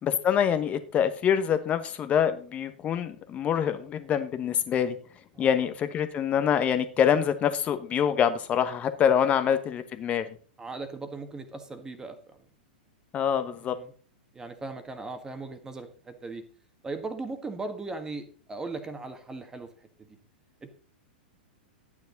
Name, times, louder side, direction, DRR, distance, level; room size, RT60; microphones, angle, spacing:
voice 1, 0.0-5.0 5.4-10.3 13.1-13.8, left 8 dB, 25° left, 11 dB, 1.1 m, -25 dB
voice 2, 5.3-5.7 10.6-12.4 13.6-13.9 14.3-16.4 16.8-19.7 20.0-20.2 20.6-20.7, right 3 dB, 10° right, 7 dB, 1.6 m, -38 dB
11.5 x 9.6 x 4.0 m, 0.43 s
figure-of-eight pair, 100°, 5 cm